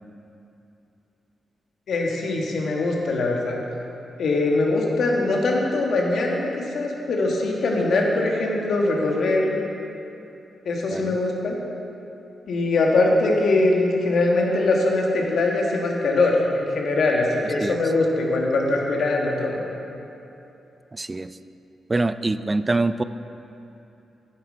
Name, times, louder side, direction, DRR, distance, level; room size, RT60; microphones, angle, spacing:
voice 1, 1.9-3.6 4.2-9.6 10.6-11.6 12.5-19.6, left 2 dB, 70° left, -1 dB, 1.5 m, -22 dB
voice 2, 20.9-21.4 21.9-23.0, right 2 dB, 30° right, 13 dB, 0.3 m, -24 dB
9.2 x 8.0 x 5.0 m, 2.8 s
supercardioid pair, 55°, 0 cm